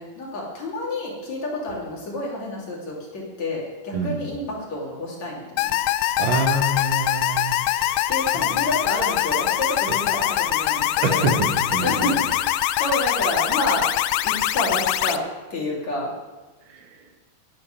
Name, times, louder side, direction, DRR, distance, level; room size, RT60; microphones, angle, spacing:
voice 1, 0.0-5.7 8.1-11.3 11.8-13.9 14.2-15.2 15.5-16.1, left 1 dB, 45° left, -4 dB, 3.5 m, -29 dB
voice 2, 3.9-4.3 6.2-8.0 9.9-10.0 11.0-12.2 16.7-16.9, right 2 dB, 85° right, 3 dB, 3.8 m, -26 dB
sound 1, 5.6-15.2, left 13 dB, 85° left, 2.2 m, -23 dB
10.5 x 7.7 x 9.8 m, 1.2 s
omnidirectional pair, 5.0 m